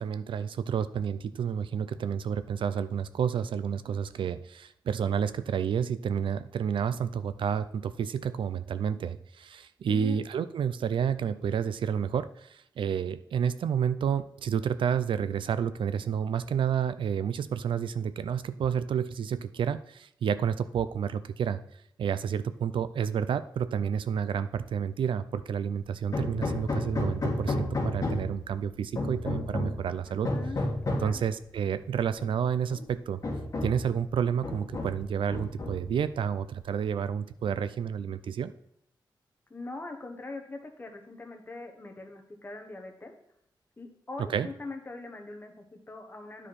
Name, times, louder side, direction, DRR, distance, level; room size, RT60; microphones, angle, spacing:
voice 1, 0.0-21.6 22.0-30.3 30.9-33.2 33.6-38.5 44.3-44.5, right 7 dB, 85° right, 13 dB, 0.4 m, -30 dB
voice 2, 9.9-10.2 30.0-30.6 30.9-31.2 39.5-43.1 43.8-46.5, left 2 dB, 25° left, 4 dB, 1.2 m, -42 dB
Hammer, 26.1-28.4 29.0-29.8 30.2-31.2 32.2-32.3 32.7-32.8 33.2-33.9 34.4-35.0 35.3-36.0, left 2 dB, 45° left, 1.8 m, -31 dB
9.8 x 4.8 x 4.2 m, 0.76 s
wide cardioid pair, 125°, 8 cm